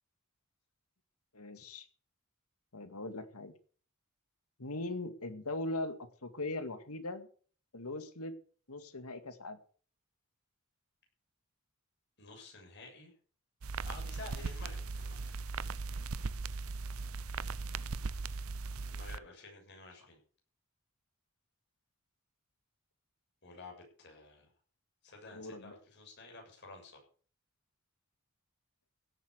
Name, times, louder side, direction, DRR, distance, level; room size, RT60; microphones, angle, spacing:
voice 1, 1.3-1.9 2.7-3.5 4.6-6.0 6.2-7.3 7.7-8.3 8.7-9.6 25.3-25.8, left 2 dB, 85° left, 10 dB, 2.1 m, -40 dB
voice 2, 12.2-13.1 13.7-15.5 18.9-20.2 23.4-24.5 25.0-27.0, left 3 dB, 50° left, 1 dB, 7.0 m, -51 dB
sound 1, 13.6-19.2, right 4 dB, 75° right, 0.7 m, -38 dB
16.5 x 8.5 x 6.8 m, 0.43 s
head